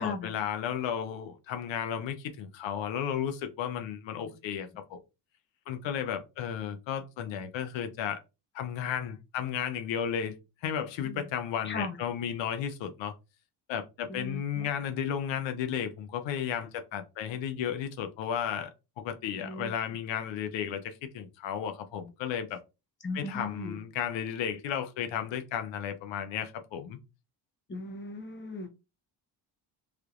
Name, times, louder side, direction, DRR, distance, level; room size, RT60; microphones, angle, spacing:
voice 1, 0.0-5.0 5.7-8.2 8.5-10.4 10.6-13.1 13.7-22.6 23.1-27.0, left 8 dB, 80° left, 0.7 m, -34 dB
voice 2, 11.6-12.0 14.1-14.7 19.4-19.7 23.0-23.8 27.7-28.7, left 3 dB, 25° left, 0.9 m, -37 dB
3.3 x 2.9 x 2.4 m
cardioid pair, 105°, 44 cm